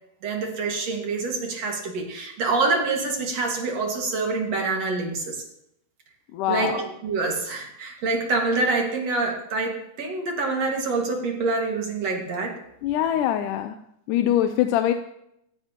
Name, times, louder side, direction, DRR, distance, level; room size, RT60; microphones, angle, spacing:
voice 1, 0.2-5.4 6.5-12.6, right 3 dB, 55° right, 1 dB, 3.0 m, -26 dB
voice 2, 6.3-6.8 12.8-13.8 14.1-14.9, left 11 dB, 80° left, 8 dB, 2.1 m, -23 dB
17.0 x 15.5 x 3.0 m, 0.79 s
omnidirectional pair, 3.7 m